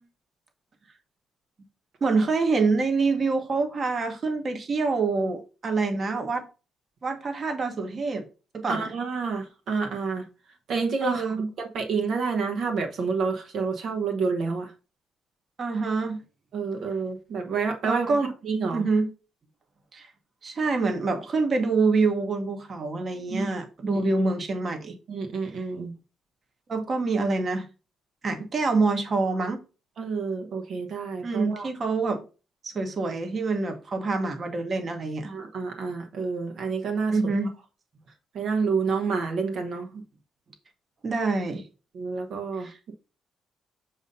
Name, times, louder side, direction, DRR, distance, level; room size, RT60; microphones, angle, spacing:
voice 1, 2.0-6.5 7.0-8.3 8.5-8.9 11.0-11.5 15.6-16.2 17.8-18.3 18.7-19.1 19.9-20.1 20.4-25.0 26.7-27.7 28.2-29.6 31.2-32.2 32.6-35.3 37.1-37.5 41.0-41.7 42.6-42.8, right 3 dB, 40° right, 1.1 m, -26 dB
voice 2, 8.7-10.3 10.7-14.7 16.5-18.1 18.4-18.8 23.3-23.6 23.9-24.0 25.1-25.9 30.0-31.7 35.3-37.2 38.3-40.0 41.9-42.9, right 4 dB, 70° right, 1.1 m, -29 dB
7.0 x 2.7 x 5.3 m
cardioid pair, 90°, 0 cm